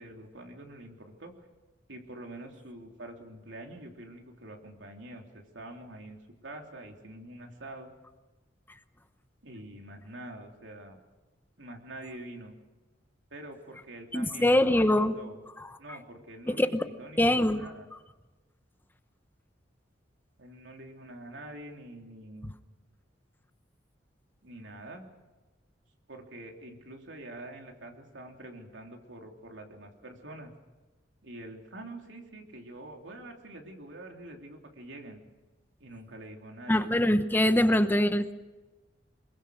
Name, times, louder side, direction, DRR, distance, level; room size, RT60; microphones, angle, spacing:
voice 1, 0.0-1.5 1.9-7.9 9.4-11.0 11.6-12.5 13.3-15.4 15.8-17.9 20.4-22.5 24.4-25.0 26.1-30.5 31.2-35.2 35.8-36.9, right 1 dB, 90° right, 2 dB, 3.3 m, -46 dB
voice 2, 14.1-15.2 16.5-16.8 17.2-17.6 36.7-38.3, left 1 dB, 10° left, 10 dB, 0.8 m, -23 dB
24.5 x 22.5 x 6.4 m, 1.2 s
head